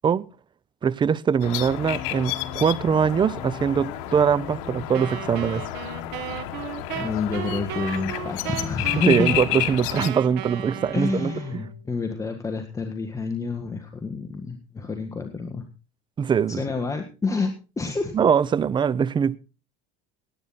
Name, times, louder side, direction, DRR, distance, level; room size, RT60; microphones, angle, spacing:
voice 1, 0.8-5.6 9.1-11.6 16.2-16.6 18.1-19.4, right 7 dB, 25° right, 0.7 m, -22 dB
sound 1, 1.4-10.1, left 14 dB, 80° left, 1.3 m, -31 dB
sound 2, 1.6-11.3, left 4 dB, 35° left, 6.1 m, -42 dB
Wind instrument woodwind instrument, 4.9-11.8, right 12 dB, 70° right, 1.7 m, -35 dB
voice 2, 6.9-9.4 10.9-15.6 16.5-18.1, left 4 dB, 15° left, 1.6 m, -28 dB
18.0 x 9.3 x 4.2 m
supercardioid pair, 115°, 18 cm